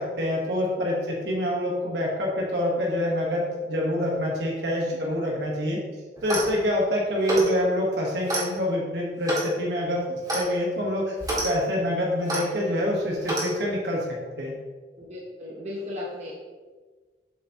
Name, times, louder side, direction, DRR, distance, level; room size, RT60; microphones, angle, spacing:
voice 1, 0.0-5.8 6.2-11.1 11.4-14.6, equal, 75° right, -2 dB, 1.2 m, -26 dB
Clock, 6.2-6.6 7.2-7.5 8.3-8.5 9.2-9.5 10.3-10.5 11.2-11.5 12.3-12.4 13.2-13.5, right 1 dB, 20° right, 1.7 m, -27 dB
voice 2, 15.0-16.3, left 2 dB, 40° right, -5 dB, 0.9 m, -36 dB
7.2 x 6.6 x 2.9 m, 1.4 s
head